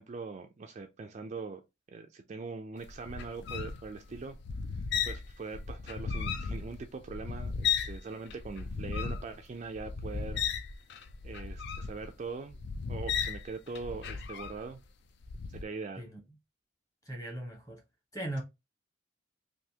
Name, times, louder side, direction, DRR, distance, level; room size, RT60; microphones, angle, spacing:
voice 1, 0.0-1.6 1.9-4.4 4.7-10.4 11.2-12.6 12.9-14.8 15.6-16.0, right 4 dB, 35° right, 0.3 m, -42 dB
sound 1, 2.8-8.0 8.3-14.8 15.2-15.6, left 6 dB, 55° left, 0.4 m, -35 dB
voice 2, 17.1-17.8 18.1-18.4, right 1 dB, 15° left, 1.0 m, -38 dB
3.3 x 2.6 x 2.8 m
head